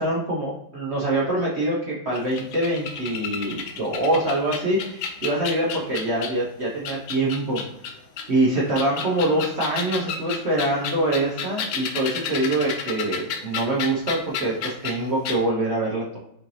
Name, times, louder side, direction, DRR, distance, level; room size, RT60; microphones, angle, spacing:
voice 1, 0.0-7.9 8.3-16.2, right 1 dB, 75° right, -6 dB, 0.6 m, -24 dB
sound 1, 2.1-6.4 6.8-8.2 8.7-15.0 15.2-15.4, left 6 dB, 70° left, 1.0 m, -31 dB
6.3 x 2.7 x 3.1 m, 0.78 s
omnidirectional pair, 2.3 m